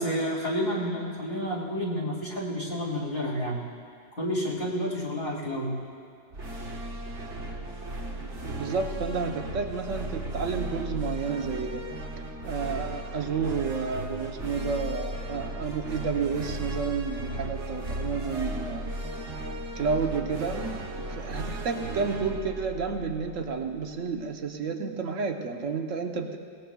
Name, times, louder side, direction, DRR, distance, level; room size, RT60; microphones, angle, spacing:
voice 1, 0.0-3.6 4.2-5.7, equal, 50° left, -5 dB, 3.3 m, -30 dB
sound 1, 6.3-23.8, right 1 dB, 65° right, 1.6 m, -36 dB
voice 2, 8.2-11.9 12.4-18.9 19.7-26.4, right 5 dB, 90° right, 4 dB, 1.4 m, -31 dB
22.5 x 19.0 x 2.3 m, 2.2 s
omnidirectional pair, 1.3 m